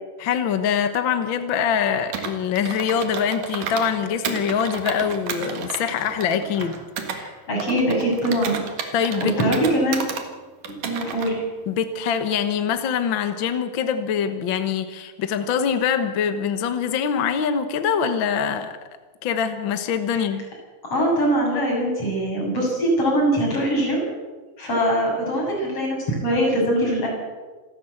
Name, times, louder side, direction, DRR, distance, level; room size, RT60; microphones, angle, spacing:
voice 1, 0.2-6.7 8.9-9.3 11.7-18.7 19.2-20.4, left 7 dB, 60° left, 9 dB, 1.2 m, -24 dB
Computer keyboard, 2.1-3.9 4.2-7.2 7.6-10.2 10.6-11.3, right 6 dB, 70° right, 3.4 m, -32 dB
voice 2, 7.1-10.0 10.7-11.4 20.9-24.0 24.6-27.1, right 1 dB, 45° left, -2 dB, 8.4 m, -22 dB
27.0 x 13.0 x 7.9 m, 1.3 s
omnidirectional pair, 3.9 m